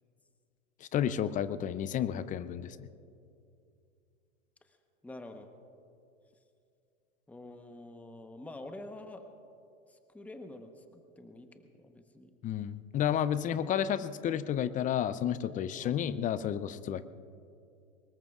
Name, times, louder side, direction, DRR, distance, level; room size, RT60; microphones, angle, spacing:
voice 1, 0.8-2.9 12.4-17.0, left 9 dB, 20° left, 15 dB, 0.5 m, -31 dB
voice 2, 5.0-5.5 7.3-9.2 9.9-12.3 15.8-16.0, left 2 dB, 5° left, 6 dB, 1.0 m, -47 dB
24.0 x 21.0 x 2.4 m, 2.5 s
hypercardioid pair, 105°, 39 cm